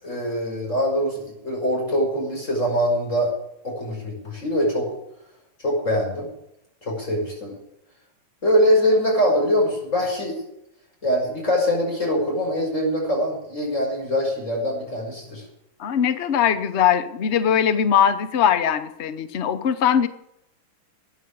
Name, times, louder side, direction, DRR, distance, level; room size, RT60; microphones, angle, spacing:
voice 1, 0.0-3.3 3.6-4.9 5.6-6.3 6.8-7.6 8.4-10.4 11.0-15.4, equal, 35° left, -1 dB, 6.2 m, -23 dB
voice 2, 15.8-20.1, left 8 dB, 65° left, 12 dB, 0.6 m, -20 dB
13.5 x 9.4 x 8.5 m, 0.82 s
omnidirectional pair, 2.3 m